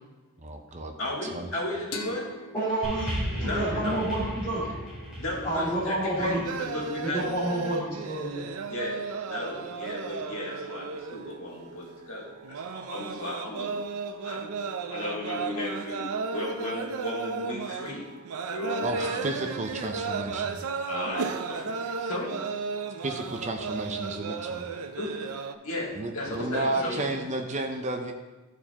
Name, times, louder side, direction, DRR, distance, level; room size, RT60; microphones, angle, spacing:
voice 1, 0.4-0.9 1.2-1.5 18.8-20.6 23.0-24.7 26.0-28.1, right 2 dB, 35° right, 4 dB, 0.6 m, -32 dB
voice 2, 1.0-2.3 3.4-4.0 5.2-7.2 8.7-9.0 9.2-13.7 14.2-14.5 14.8-16.1 16.3-18.1 18.5-19.3 20.8-21.7 22.0-22.4 25.0-25.3 25.6-27.2, left 1 dB, 65° left, -4 dB, 2.0 m, -35 dB
sound 1, 1.9-5.3, left 2 dB, 85° left, 1.0 m, -44 dB
voice 3, 2.5-3.1 3.4-4.6 5.4-6.4 7.0-8.5, right 1 dB, 20° left, -14 dB, 2.5 m, -29 dB
sound 2, 2.8-7.4 8.2-8.3, equal, 5° right, 2.3 m, -36 dB
sound 3, 6.2-25.5, right 5 dB, 80° right, 0.5 m, -34 dB
13.0 x 4.6 x 2.9 m, 1.2 s
head